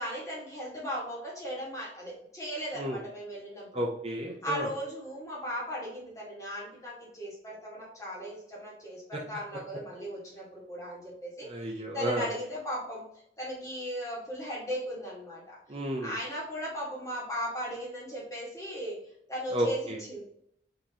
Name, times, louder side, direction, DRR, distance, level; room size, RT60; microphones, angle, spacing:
voice 1, 0.0-3.7 4.4-15.6 16.0-19.0 19.3-20.2, equal, 20° left, -5 dB, 1.6 m, -37 dB
voice 2, 3.7-4.7 11.5-12.3 15.7-16.2 19.5-20.0, right 1 dB, 35° right, -1 dB, 0.6 m, -32 dB
4.3 x 3.8 x 2.9 m, 0.72 s
head